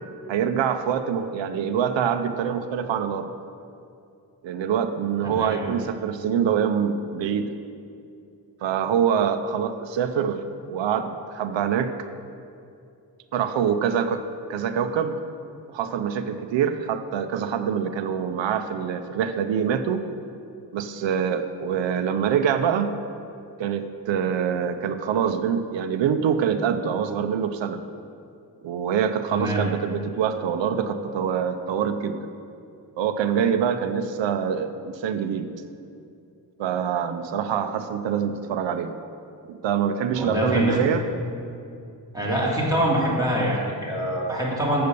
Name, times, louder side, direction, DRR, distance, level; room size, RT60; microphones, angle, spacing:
voice 1, 0.3-3.3 4.4-7.5 8.6-11.9 13.3-14.2 14.5-15.2 15.7-20.1 20.7-23.0 23.6-27.8 28.6-32.3 33.0-35.5 36.6-38.9 39.5-41.0, right 7 dB, 80° right, 8 dB, 0.6 m, -25 dB
voice 2, 5.2-5.6 29.3-29.7 40.2-40.8 42.1-44.8, equal, 10° right, -5 dB, 2.6 m, -24 dB
7.9 x 6.6 x 6.7 m, 2.6 s
cardioid pair, 95°, 44 cm